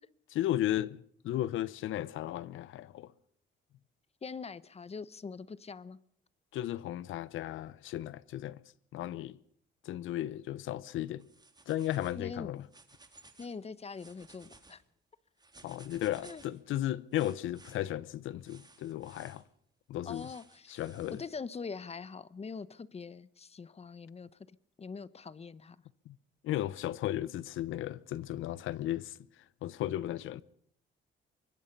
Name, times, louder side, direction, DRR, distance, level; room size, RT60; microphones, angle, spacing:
voice 1, 0.3-3.1 6.5-8.6 8.9-9.4 9.8-11.3 11.7-12.7 15.6-19.4 19.9-20.3 20.7-21.2 26.1-26.2 26.4-29.2 29.6-30.4, left 13 dB, 85° left, 0.8 m, -35 dB
voice 2, 4.2-6.0 12.1-12.5 13.4-14.8 16.2-16.4 20.0-20.8 21.1-24.3 24.8-25.8, left 5 dB, 30° left, 1.0 m, -43 dB
sound 1, 11.2-12.2 12.6-13.5 13.9-14.7 15.4-16.6 17.1-17.8 18.4-19.4 20.1-21.3, right 3 dB, 20° right, 3.5 m, -58 dB
24.0 x 21.0 x 5.5 m
cardioid pair, 90°, 20 cm